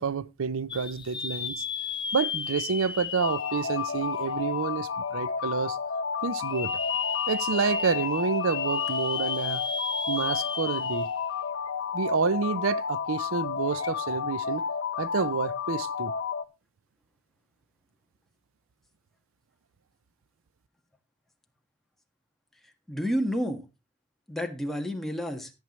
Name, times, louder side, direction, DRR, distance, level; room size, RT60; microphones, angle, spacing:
voice 1, 0.0-1.6 2.1-5.8 6.2-6.8 7.3-9.6 10.1-11.1 11.9-14.6 15.0-16.1, right 5 dB, 70° right, 0.5 m, -29 dB
sound 1, 0.7-4.7 5.2-5.3 6.3-11.3 11.7-11.8 13.7-13.9, left 5 dB, 20° left, 0.7 m, -34 dB
sound 2, 3.2-16.4, left 6 dB, 55° left, 0.8 m, -31 dB
voice 2, 22.9-23.6 24.3-25.5, equal, ahead, 1.5 m, -30 dB
14.5 x 9.1 x 3.0 m
head